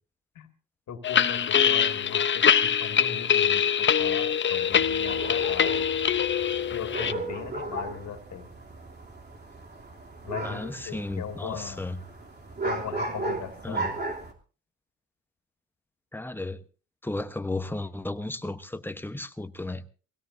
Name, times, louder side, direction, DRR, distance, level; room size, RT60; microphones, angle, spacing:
voice 1, 0.9-5.9 6.7-8.5 10.2-11.9 12.6-13.9, left 8 dB, 70° left, 2.4 m, -38 dB
sound 1, 1.0-7.1, left 8 dB, 40° left, 0.8 m, -23 dB
sound 2, 4.7-14.3, right 2 dB, 35° right, 3.1 m, -36 dB
voice 2, 10.4-12.0 13.6-13.9 16.1-16.6 17.0-19.8, left 2 dB, 5° left, 1.1 m, -34 dB
23.5 x 17.0 x 2.7 m
cardioid pair, 90°, 30 cm